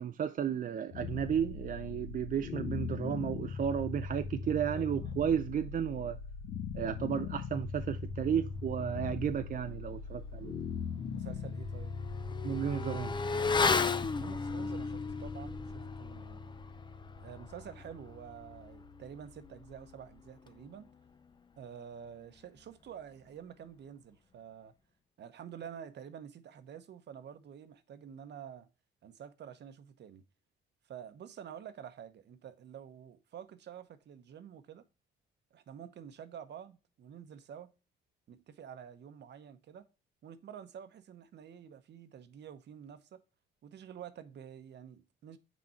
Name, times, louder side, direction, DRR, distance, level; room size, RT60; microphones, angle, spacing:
voice 1, 0.0-6.2 6.7-10.5 12.4-13.2, right 8 dB, 45° right, 0.4 m, -33 dB
sound 1, 0.9-19.9, left 5 dB, 85° left, 1.1 m, -41 dB
Motorcycle / Accelerating revving vroom, 10.5-10.6 10.9-21.0 21.2-21.3, left 4 dB, 25° left, 0.5 m, -36 dB
voice 2, 11.1-11.9 14.2-16.6 17.2-20.9 21.6-24.7 25.2-28.7 29.0-30.2 30.9-34.8 35.5-37.7 38.3-39.9 40.2-43.2 43.6-45.4, right 8 dB, 60° right, 0.9 m, -49 dB
6.3 x 4.2 x 4.2 m
cardioid pair, 90°, 20 cm